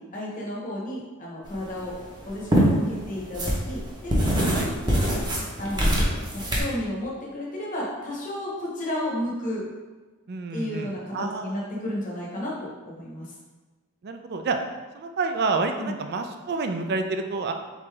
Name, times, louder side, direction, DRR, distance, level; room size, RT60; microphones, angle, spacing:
voice 1, 0.0-1.9 2.2-5.2 5.6-9.7 10.5-13.3 15.8-15.9, left 1 dB, 35° left, -4 dB, 0.9 m, -33 dB
sound 1, 1.5-6.6, equal, 20° right, 0.8 m, -24 dB
voice 2, 10.3-11.8 14.0-14.6 14.9-17.5, right 4 dB, 45° right, 6 dB, 0.4 m, -29 dB
3.9 x 3.7 x 3.3 m, 1.3 s
head